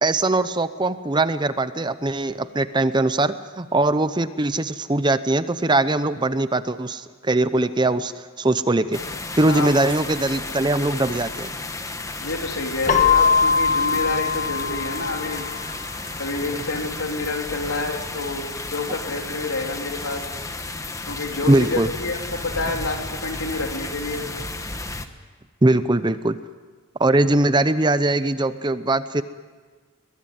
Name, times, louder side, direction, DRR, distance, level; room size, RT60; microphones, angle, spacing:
voice 1, 0.0-9.0 9.4-11.5 21.4-21.9 25.6-26.4 27.0-29.2, right 2 dB, 20° right, 13 dB, 0.7 m, -21 dB
sound 1, 8.9-25.1, left 2 dB, 15° left, 1.2 m, -33 dB
voice 2, 12.2-15.5 16.2-20.3 21.1-24.3, left 2 dB, 75° left, 2 dB, 3.6 m, -28 dB
Keyboard (musical), 12.9-15.6, left 6 dB, 35° left, 1.4 m, -21 dB
22.5 x 21.5 x 9.2 m, 1.5 s
head